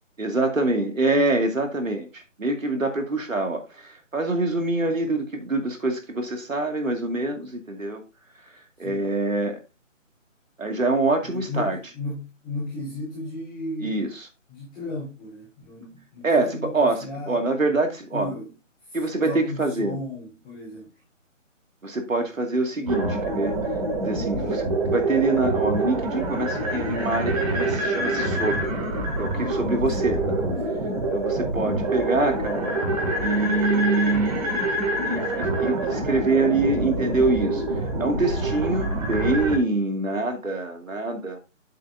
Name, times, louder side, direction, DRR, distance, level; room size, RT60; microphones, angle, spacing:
voice 1, 0.2-8.0 8.8-9.6 10.6-11.8 13.8-14.3 16.2-18.3 18.9-20.0 21.8-23.6 24.0-28.7 29.2-30.4 31.1-32.7 33.2-34.4 35.0-37.6 38.0-41.4, right 2 dB, 85° right, 2.3 m, -25 dB
voice 2, 8.8-9.1 11.2-14.0 14.5-17.4 18.1-18.5 18.9-20.9 24.4-24.6 29.9-30.4, left 1 dB, 10° left, 3.5 m, -35 dB
sound 1, 22.9-39.6, right 2 dB, 25° right, 2.3 m, -26 dB
9.0 x 8.1 x 2.6 m
figure-of-eight pair, 160°, 39 cm